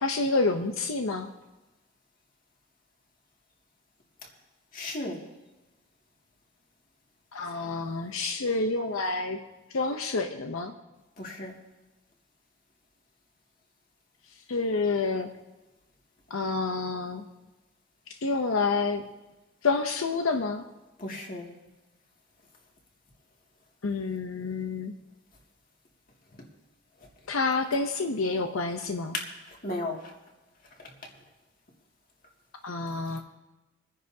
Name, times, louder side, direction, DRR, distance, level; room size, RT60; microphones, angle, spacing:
voice 1, 0.0-1.3 7.3-9.4 9.7-10.7 14.5-15.3 16.3-17.2 18.1-19.1 19.6-20.6 23.8-24.9 27.3-29.2 32.6-33.2, left 3 dB, 90° left, 5 dB, 0.7 m, -28 dB
voice 2, 4.7-5.2 11.2-11.5 21.0-21.5 29.1-29.2 29.5-30.0 33.1-33.2, left 2 dB, 40° left, -1 dB, 2.2 m, -34 dB
28.0 x 9.9 x 2.8 m, 1.1 s
head